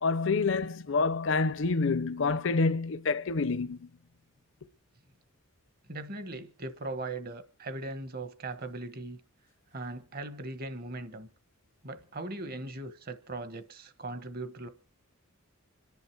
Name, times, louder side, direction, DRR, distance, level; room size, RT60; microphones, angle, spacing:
voice 1, 0.0-3.8, left 4 dB, 55° left, 0.6 m, -27 dB
voice 2, 5.9-9.2 9.7-11.3 11.8-14.7, right 2 dB, 45° right, 1.2 m, -39 dB
25.5 x 10.5 x 4.6 m
head